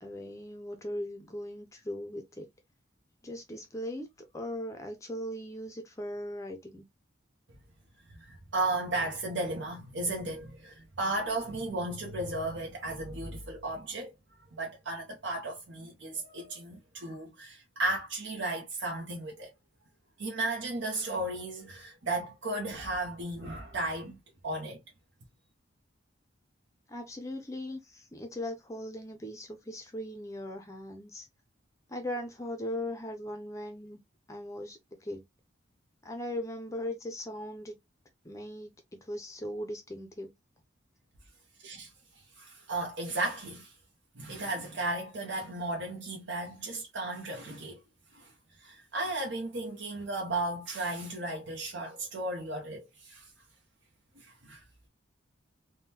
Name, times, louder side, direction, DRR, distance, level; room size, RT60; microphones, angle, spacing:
voice 1, 0.0-2.5 3.2-4.1 4.3-6.9 26.9-31.3 31.9-34.0 34.3-35.2 36.0-37.7 38.2-40.3, left 1 dB, 15° left, 0.5 m, -39 dB
voice 2, 8.2-14.1 14.5-19.5 20.2-24.2 24.4-24.8 41.6-41.9 42.4-43.7 44.2-47.8 48.1-48.3 48.6-53.3 54.2-54.6, right 2 dB, 70° right, 0.7 m, -35 dB
3.6 x 2.1 x 2.7 m
head